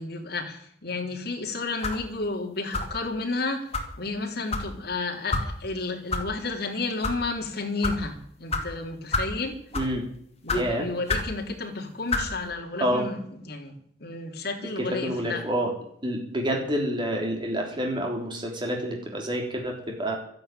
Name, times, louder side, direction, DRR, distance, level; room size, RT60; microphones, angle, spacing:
voice 1, 0.0-3.7 4.0-9.6 10.4-15.5, left 3 dB, 60° left, 2 dB, 3.3 m, -32 dB
sound 1, 1.8-2.1 2.7-3.0 3.7-3.9 4.5-4.7 5.3-5.5 6.1-6.2 6.9-7.2 7.8-8.0 8.5-8.6 9.1-9.3 9.7-10.0 10.5-10.6 11.1-11.3 12.1-12.3, left 3 dB, 35° left, 2.6 m, -27 dB
voice 2, 10.5-10.8 12.8-13.0 14.9-15.7 16.0-20.2, equal, 25° right, 0 dB, 3.5 m, -28 dB
13.0 x 11.5 x 9.1 m, 0.66 s
head